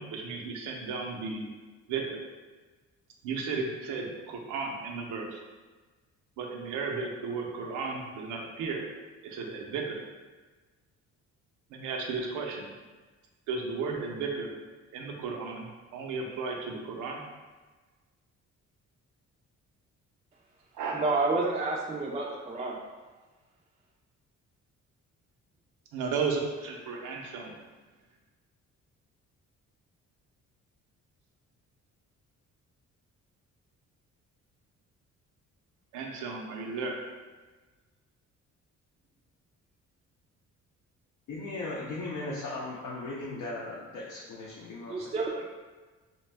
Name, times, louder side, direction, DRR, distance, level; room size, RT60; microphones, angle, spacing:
voice 1, 0.0-1.4 1.9-2.2 3.2-5.4 6.4-8.8 9.2-10.0 11.7-12.7 13.5-14.5 14.9-17.2 20.7-21.1 25.9-27.5 35.9-37.0, right 4 dB, 90° right, 1 dB, 0.5 m, -34 dB
voice 2, 20.9-22.8 44.9-45.5, right 3 dB, 20° right, -2 dB, 0.3 m, -29 dB
voice 3, 41.3-45.1, left 2 dB, 75° left, -5 dB, 0.6 m, -37 dB
2.6 x 2.2 x 3.2 m, 1.3 s
cardioid pair, 90°, 30 cm